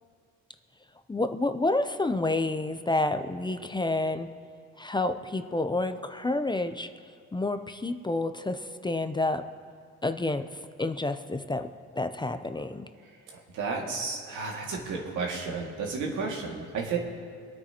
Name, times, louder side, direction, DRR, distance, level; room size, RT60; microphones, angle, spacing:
voice 1, 1.1-4.3 4.8-6.9 7.3-9.4 10.0-11.7 12.0-12.9, left 2 dB, 15° left, 8 dB, 0.6 m, -29 dB
voice 2, 13.3-17.0, right 4 dB, 80° right, -1 dB, 2.3 m, -32 dB
25.0 x 9.0 x 3.0 m, 2.2 s
cardioid pair, 90°, 30 cm